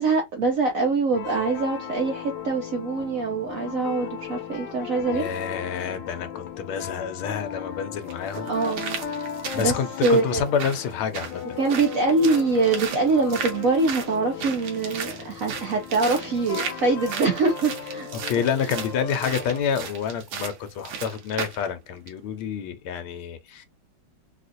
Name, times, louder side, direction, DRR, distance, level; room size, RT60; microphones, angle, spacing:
voice 1, 0.0-5.2 8.4-9.0 9.5-9.7 10.0-10.4 11.6-18.1, right 3 dB, 70° right, 0.8 m, -24 dB
sound 1, 1.1-19.6, left 7 dB, 70° left, 1.3 m, -37 dB
voice 2, 5.1-8.5 9.5-11.4 18.1-23.7, left 7 dB, 85° left, 1.5 m, -28 dB
sound 2, 7.2-7.3 8.1-21.7 22.1-22.2, right 6 dB, 85° right, 1.8 m, -36 dB
4.2 x 2.4 x 2.5 m
omnidirectional pair, 2.3 m